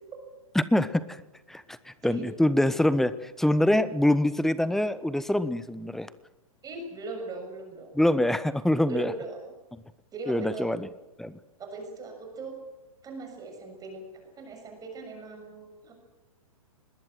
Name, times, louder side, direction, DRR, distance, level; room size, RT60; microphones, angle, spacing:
voice 1, 0.5-1.2 1.5-6.1 7.9-9.1 10.3-10.9 11.2-11.4, left 1 dB, ahead, 15 dB, 0.9 m, -25 dB
voice 2, 6.6-7.9 8.9-9.5 10.1-10.7 11.6-12.6 13.0-14.0 14.4-15.9, right 3 dB, 20° right, 4 dB, 6.5 m, -39 dB
24.5 x 20.5 x 7.7 m, 1.0 s
hypercardioid pair, 125°, 18 cm